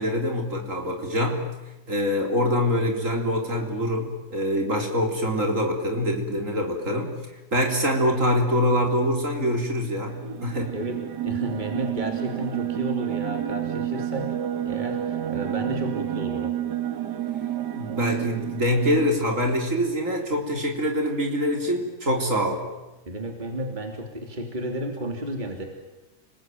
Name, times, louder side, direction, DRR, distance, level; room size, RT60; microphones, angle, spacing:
voice 1, 0.0-1.5 1.9-7.2 7.5-10.8 17.7-22.6, equal, 45° right, 2 dB, 4.2 m, -24 dB
sound 1, 10.1-19.3, right 11 dB, 80° right, 2.0 m, -30 dB
voice 2, 11.2-14.4 14.6-16.6 23.1-25.6, right 1 dB, 25° right, 3 dB, 3.2 m, -32 dB
30.0 x 20.5 x 9.3 m, 1.0 s
omnidirectional pair, 1.8 m